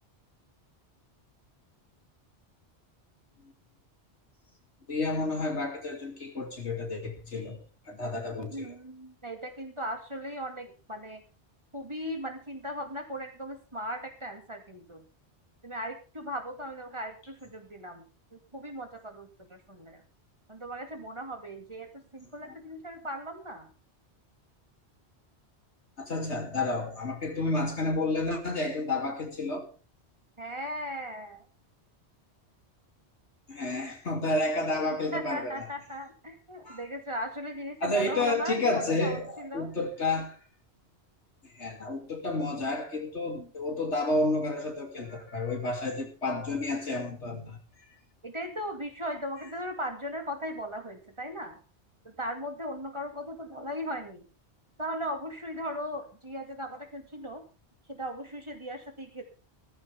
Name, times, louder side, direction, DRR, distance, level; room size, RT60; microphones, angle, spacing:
voice 1, 4.9-7.6 7.9-8.7 26.0-29.7 33.5-35.6 36.6-36.8 37.8-40.4 41.4-47.6, left 2 dB, 90° left, 3.2 m, -30 dB
voice 2, 8.4-11.2 11.7-15.1 15.6-18.0 18.3-20.0 20.5-23.7 30.4-31.5 35.1-39.7 48.2-51.6 52.0-54.2 54.8-57.4 57.9-59.2, equal, 25° right, 2.4 m, -38 dB
17.5 x 14.0 x 3.5 m
omnidirectional pair, 1.1 m